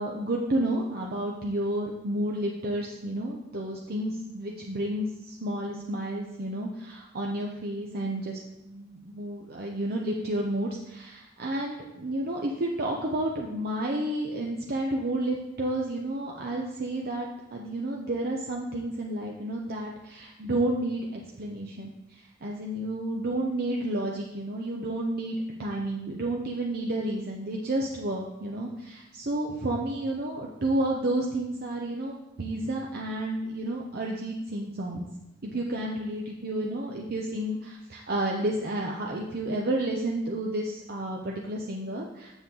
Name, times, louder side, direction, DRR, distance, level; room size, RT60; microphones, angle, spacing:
voice 1, 0.0-35.0 35.4-42.3, right 1 dB, 55° right, -1 dB, 0.8 m, -31 dB
7.2 x 7.1 x 3.9 m, 0.91 s
head